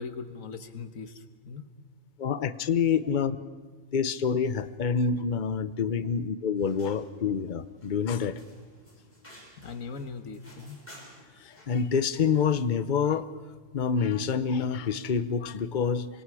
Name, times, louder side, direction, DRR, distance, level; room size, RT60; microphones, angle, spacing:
voice 1, 0.0-1.7 9.6-10.8, left 5 dB, 85° left, 9 dB, 1.7 m, -40 dB
voice 2, 2.2-3.4 3.9-8.4 11.4-13.3 13.7-16.1, left 6 dB, 40° left, 13 dB, 0.9 m, -27 dB
sound 1, 6.6-12.7, equal, 10° left, 6.4 m, -55 dB
27.0 x 24.5 x 4.9 m, 1.5 s
omnidirectional pair, 1.4 m